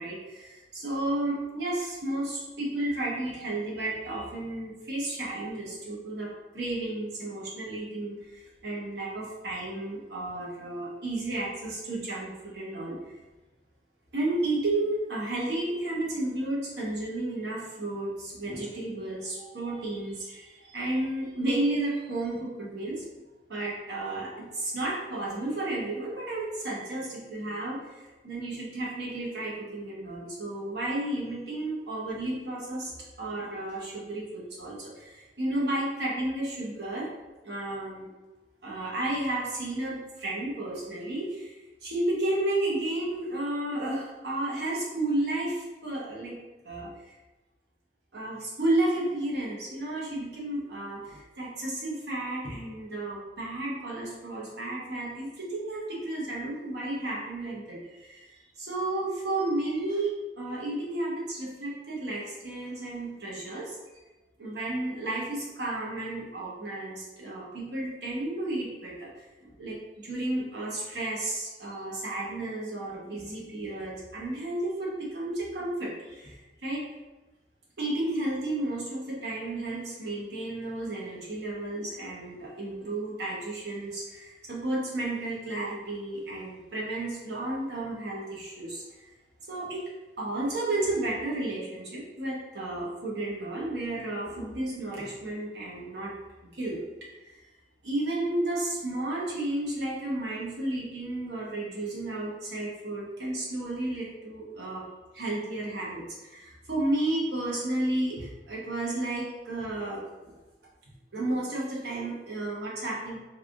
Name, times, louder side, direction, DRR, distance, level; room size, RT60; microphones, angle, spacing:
voice 1, 0.0-13.2 14.1-23.0 23.5-37.1 37.4-38.1 38.6-41.5 41.8-46.4 46.6-47.1 48.1-63.8 64.4-76.8 77.8-89.1 89.5-89.8 90.2-96.1 96.5-97.4 97.8-104.9 105.1-110.3 111.1-113.2, right 1 dB, 65° right, -5 dB, 1.1 m, -32 dB
3.4 x 3.4 x 2.5 m, 1.1 s
head